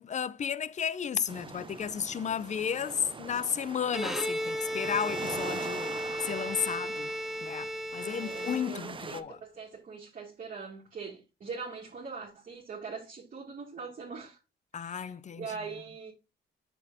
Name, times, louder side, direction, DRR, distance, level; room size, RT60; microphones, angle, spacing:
voice 1, 0.0-7.1 7.4-9.4 14.7-15.6, left 7 dB, 35° left, 0.5 m, -33 dB
sound 1, 1.3-9.2, right 5 dB, 25° right, 0.6 m, -43 dB
Bowed string instrument, 3.9-9.1, equal, ahead, 0.9 m, -35 dB
voice 2, 8.0-14.4 14.7-16.1, right 5 dB, 45° right, 2.7 m, -42 dB
7.1 x 7.0 x 2.7 m
cardioid pair, 90°, 20 cm